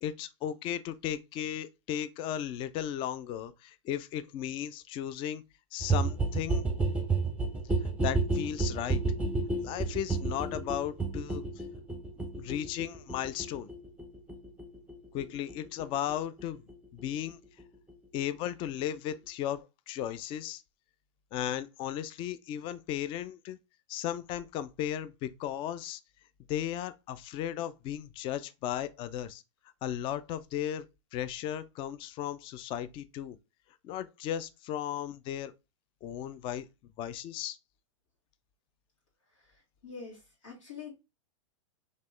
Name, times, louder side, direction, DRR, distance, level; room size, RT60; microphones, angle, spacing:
voice 1, 0.0-5.4 5.7-6.6 8.0-9.0 9.6-11.4 12.4-13.7 15.1-16.6 16.9-17.4 18.1-20.6 21.3-23.6 23.9-26.0 26.5-29.4 29.8-30.9 31.1-33.4 33.8-35.5 36.0-36.7 37.0-37.6, left 11 dB, 30° left, 0.4 m, -35 dB
sound 1, 5.8-17.3 17.6-17.7 17.9-18.0 18.2-18.3 18.5-18.6 18.8-18.9 19.1-19.2, right 3 dB, 10° right, 0.7 m, -32 dB
voice 2, 39.4-41.0, left 5 dB, 85° left, 2.1 m, -46 dB
4.2 x 3.0 x 3.1 m
hypercardioid pair, 110°, 16 cm